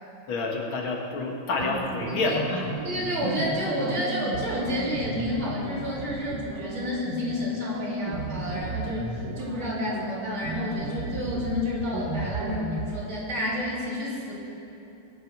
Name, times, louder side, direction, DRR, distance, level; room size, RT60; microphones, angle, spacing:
voice 1, 0.3-2.7, left 3 dB, 85° left, 0 dB, 2.5 m, -28 dB
sound 1, 1.6-12.9, right 3 dB, 55° right, 1.6 m, -34 dB
voice 2, 2.8-14.3, left 1 dB, 80° right, -6 dB, 4.1 m, -30 dB
21.0 x 7.7 x 6.2 m, 2.9 s
omnidirectional pair, 2.2 m